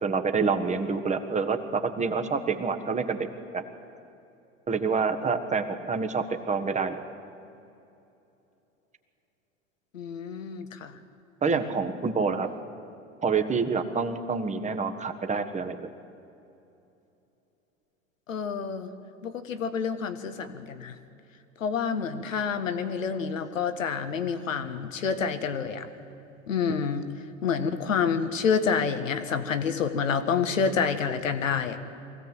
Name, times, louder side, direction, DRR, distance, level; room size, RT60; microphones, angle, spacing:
voice 1, 0.0-3.3 3.5-3.6 4.7-7.0 11.4-12.5 13.2-15.9, right 5 dB, 20° right, 7 dB, 1.5 m, -27 dB
voice 2, 9.9-10.9 11.6-11.8 18.3-18.9 19.2-20.9 21.6-25.9 26.5-27.1 27.4-31.8, left 6 dB, 80° left, 10 dB, 1.4 m, -28 dB
23.0 x 16.0 x 7.8 m, 2.8 s
hypercardioid pair, 85°, 39 cm